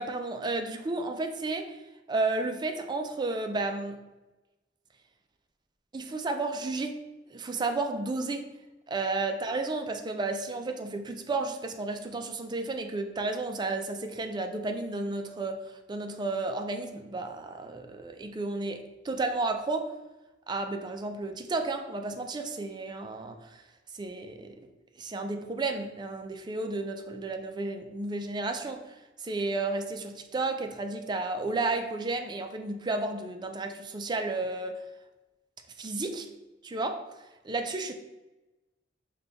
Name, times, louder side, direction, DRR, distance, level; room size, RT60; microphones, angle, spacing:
voice 1, 0.0-1.8 2.1-4.0 5.9-7.0 7.3-8.5 8.9-19.9 20.5-23.6 23.9-24.6 25.0-34.8 35.8-36.3 36.6-37.0 37.4-37.9, right 3 dB, 25° right, 6 dB, 0.4 m, -32 dB
5.3 x 2.3 x 3.9 m, 1.1 s
head